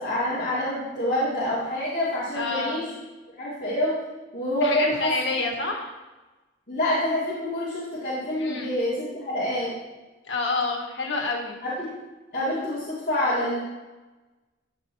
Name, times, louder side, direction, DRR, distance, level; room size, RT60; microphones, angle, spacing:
voice 1, 0.0-2.8 3.4-3.9 4.3-5.1 6.7-9.7 11.6-11.9 12.3-13.6, left 1 dB, 45° left, -9 dB, 2.1 m, -26 dB
voice 2, 2.3-2.8 4.6-5.9 8.4-8.7 10.2-11.6, left 3 dB, 85° left, 1 dB, 1.5 m, -28 dB
12.0 x 6.2 x 2.7 m, 1.1 s
head